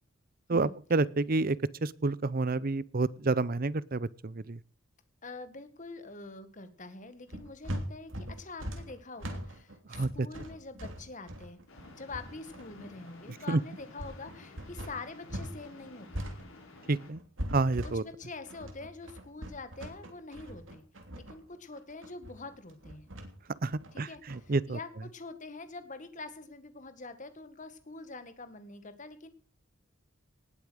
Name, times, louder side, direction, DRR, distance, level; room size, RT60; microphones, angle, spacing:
voice 1, 0.5-4.6 9.9-10.3 13.5-13.6 16.9-17.2 17.5-18.0 23.6-24.8, right 3 dB, 45° right, 20 dB, 0.7 m, -29 dB
voice 2, 5.2-11.6 12.0-16.3 17.8-20.8 21.1-23.1 23.9-29.3, left 3 dB, 40° left, 11 dB, 1.8 m, -45 dB
sound 1, 7.3-15.6 15.8-24.6, equal, 70° right, 3.1 m, -41 dB
sound 2, 11.7-17.1, left 2 dB, 80° left, 5.7 m, -52 dB
19.0 x 8.6 x 6.4 m, 0.41 s
head